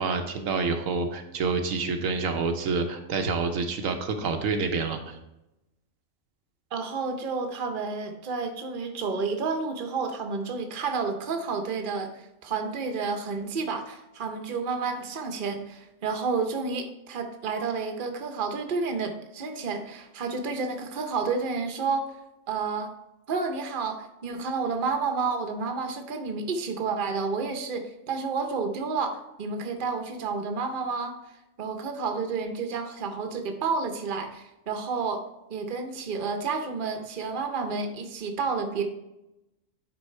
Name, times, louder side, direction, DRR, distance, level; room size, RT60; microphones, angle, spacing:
voice 1, 0.0-5.2, right 4 dB, 85° right, 5 dB, 1.2 m, -28 dB
voice 2, 6.7-22.2 22.5-22.9 23.3-31.2 31.6-35.2 35.5-38.8, right 4 dB, 45° right, 5 dB, 0.9 m, -30 dB
9.7 x 4.0 x 4.4 m, 0.91 s
omnidirectional pair, 1.4 m